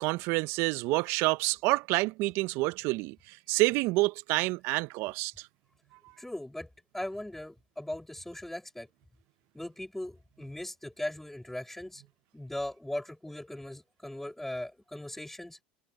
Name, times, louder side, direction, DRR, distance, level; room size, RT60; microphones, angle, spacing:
voice 1, 0.0-5.3, right 23 dB, 60° right, 1.1 m, -28 dB
voice 2, 6.2-6.7 6.9-8.9 9.5-12.0 12.3-15.6, left 1 dB, 5° left, 6.2 m, -39 dB
hypercardioid pair, 80°, 5 cm